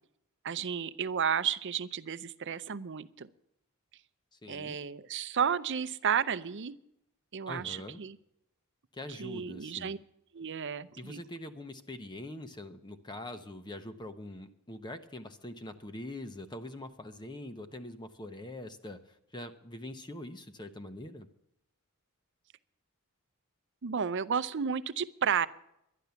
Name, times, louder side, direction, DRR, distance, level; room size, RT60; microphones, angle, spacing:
voice 1, 0.4-3.3 4.5-6.8 7.3-8.2 9.2-10.0 10.3-11.2 23.8-25.5, right 7 dB, 55° right, 15 dB, 0.6 m, -32 dB
voice 2, 4.3-4.8 7.5-8.0 8.9-9.9 10.9-21.3, left 1 dB, 20° left, 8 dB, 0.8 m, -43 dB
12.0 x 11.0 x 6.9 m, 0.78 s
head